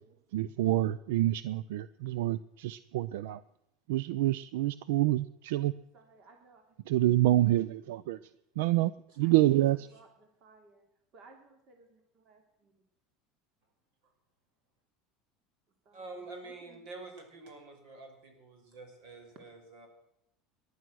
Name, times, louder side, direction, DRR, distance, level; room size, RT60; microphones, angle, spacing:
voice 1, 0.3-3.4 3.9-5.7 6.9-8.2 8.6-8.9 9.2-9.9, right 15 dB, 85° right, 17 dB, 0.5 m, -27 dB
voice 2, 5.9-6.8 9.2-10.8 11.1-12.7 15.8-16.8, right 3 dB, 45° right, 4 dB, 2.7 m, -59 dB
voice 3, 15.9-19.9, right 3 dB, 65° right, 4 dB, 5.7 m, -47 dB
19.0 x 11.5 x 6.2 m, 0.81 s
supercardioid pair, 145°, 0 cm